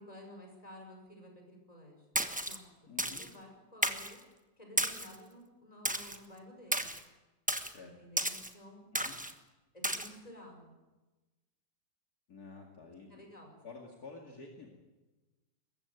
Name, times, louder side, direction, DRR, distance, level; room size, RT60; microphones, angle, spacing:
voice 1, 0.0-2.0 2.4-2.6 3.0-4.2 4.6-6.9 7.8-8.8 9.7-10.7 13.1-13.6, left 1 dB, 20° left, 2 dB, 5.7 m, -52 dB
Splash splatter, 2.2-2.6 3.0-3.3 3.8-4.1 4.8-5.2 5.9-6.2 6.7-7.0 7.5-7.7 8.2-8.5 9.0-9.3 9.8-10.1, right 1 dB, 5° right, 0.9 m, -33 dB
voice 2, 2.9-3.2 7.7-7.9 8.9-9.2 12.3-13.3 13.6-14.7, left 4 dB, 55° left, 1 dB, 2.7 m, -50 dB
22.0 x 15.0 x 9.4 m, 1.1 s
omnidirectional pair, 2.0 m